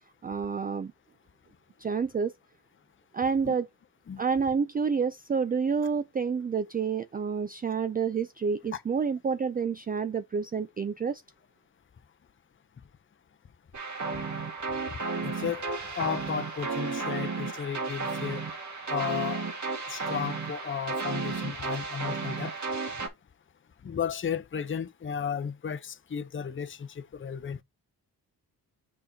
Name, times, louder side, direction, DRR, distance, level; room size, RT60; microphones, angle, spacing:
voice 1, 0.2-0.9 1.8-2.3 3.1-3.7 4.2-11.2, right 6 dB, 25° right, 0.4 m, -29 dB
sound 1, 13.7-23.1, right 4 dB, 45° right, 1.8 m, -33 dB
voice 2, 15.2-15.6 16.0-18.4 18.9-19.4 19.9-22.5 23.8-27.6, left 7 dB, 30° left, 0.6 m, -34 dB
6.5 x 5.7 x 2.8 m
cardioid pair, 70°, 39 cm